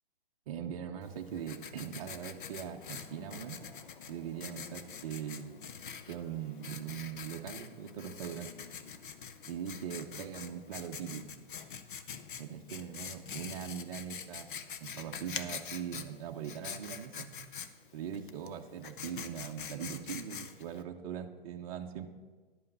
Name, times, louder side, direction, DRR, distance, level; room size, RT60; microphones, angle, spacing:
voice 1, 0.5-3.6 4.1-5.5 6.1-8.5 9.5-11.3 12.4-14.5 14.8-17.3 17.9-22.1, right 9 dB, 35° right, 3 dB, 0.8 m, -41 dB
Writing, 1.0-20.8, left 7 dB, 55° left, 0.9 m, -45 dB
11.0 x 5.6 x 7.8 m, 1.3 s
hypercardioid pair, 145°, 30 cm